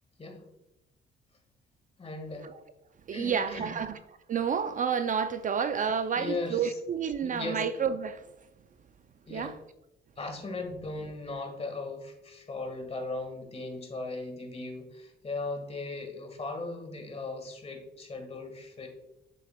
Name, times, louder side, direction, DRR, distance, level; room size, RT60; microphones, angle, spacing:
voice 1, 2.0-2.5 3.1-3.7 6.1-6.8 7.2-7.6 9.3-9.5 10.2-18.9, left 3 dB, 30° left, 1.7 m, -37 dB
voice 2, 3.1-4.0 4.3-8.2 9.3-9.6, right 7 dB, 40° right, 0.4 m, -30 dB
7.6 x 7.3 x 2.2 m
cardioid pair, 90°, 20 cm